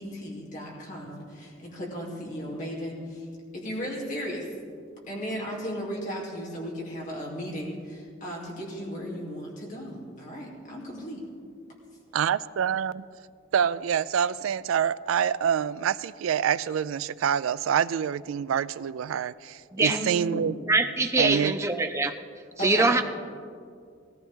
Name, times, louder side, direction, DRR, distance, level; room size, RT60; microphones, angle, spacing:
voice 1, 0.0-3.3 3.5-4.5 5.1-11.3 19.9-20.5 22.6-22.9, equal, 40° left, -3 dB, 2.9 m, -35 dB
voice 2, 12.1-13.0 13.5-20.5 21.2-21.6, right 8 dB, 90° right, 17 dB, 0.3 m, -26 dB
voice 3, 20.7-22.1 22.6-23.0, right 3 dB, 15° right, 6 dB, 0.6 m, -23 dB
18.0 x 14.5 x 3.7 m, 2.2 s
head